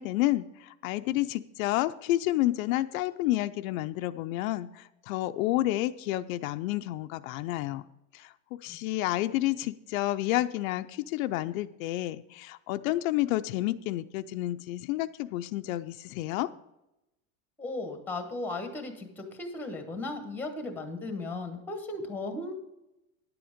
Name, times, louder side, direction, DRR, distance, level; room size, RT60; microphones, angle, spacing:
voice 1, 0.0-7.8 8.1-8.3 8.6-16.5, left 16 dB, 75° left, 10 dB, 0.6 m, -30 dB
voice 2, 17.6-22.5, left 2 dB, 5° left, 6 dB, 1.1 m, -36 dB
10.5 x 7.8 x 5.1 m, 0.91 s
supercardioid pair, 165°, 41 cm